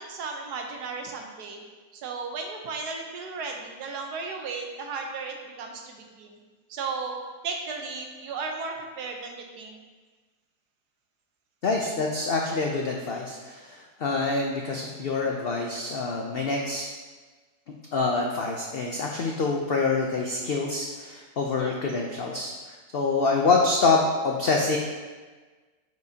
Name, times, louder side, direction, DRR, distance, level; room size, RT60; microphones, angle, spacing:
voice 1, 0.0-1.6 1.9-6.4 6.7-7.2 7.4-9.8 21.6-21.8, right 4 dB, 75° right, 3 dB, 1.4 m, -35 dB
voice 2, 11.6-16.8 17.9-24.8, left 3 dB, 80° left, 0 dB, 0.5 m, -26 dB
9.3 x 4.7 x 2.8 m, 1.3 s
omnidirectional pair, 1.7 m